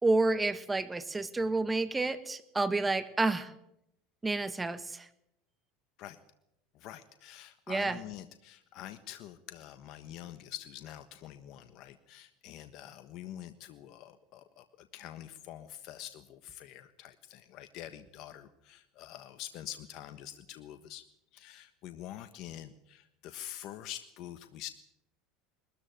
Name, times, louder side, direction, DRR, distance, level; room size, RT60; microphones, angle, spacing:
voice 1, 0.0-3.5 4.2-5.1 7.7-8.0, right 2 dB, 15° right, 13 dB, 1.5 m, -29 dB
voice 2, 6.7-21.0 21.3-24.7, left 12 dB, 55° left, 10 dB, 1.3 m, -46 dB
21.5 x 14.0 x 9.2 m, 0.81 s
supercardioid pair, 100°, 0 cm